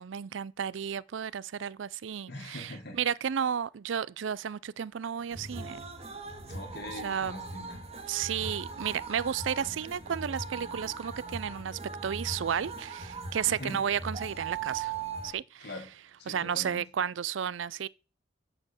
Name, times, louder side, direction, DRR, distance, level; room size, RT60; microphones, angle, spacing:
voice 1, 0.0-2.7 3.0-5.8 7.0-7.3 8.1-14.9 15.2-15.7 16.3-17.9, right 8 dB, 80° right, 0.4 m, -32 dB
voice 2, 2.3-3.0 6.5-7.8 13.5-13.8 15.6-15.9 16.2-16.9, left 1 dB, 60° left, 4.2 m, -42 dB
sound 1, 5.3-15.3, right 4 dB, 35° right, 1.8 m, -40 dB
7.6 x 7.0 x 7.7 m
head